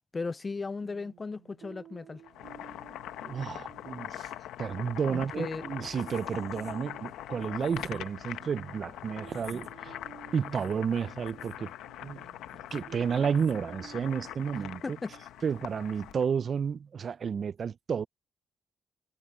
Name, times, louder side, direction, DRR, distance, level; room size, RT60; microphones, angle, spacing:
voice 1, 0.1-2.2 5.1-5.6 14.8-15.1, left 4 dB, 30° left, 0.4 m, -36 dB
sound 1, 0.8-16.4, right 10 dB, 75° right, 1.6 m, -55 dB
Boiling, 2.2-16.3, left 12 dB, 85° left, 1.0 m, -42 dB
voice 2, 3.2-9.9 10.3-11.7 12.0-12.2 12.7-15.0 15.4-18.1, right 6 dB, 50° right, 0.5 m, -31 dB
cardioid pair, 90°, 0 cm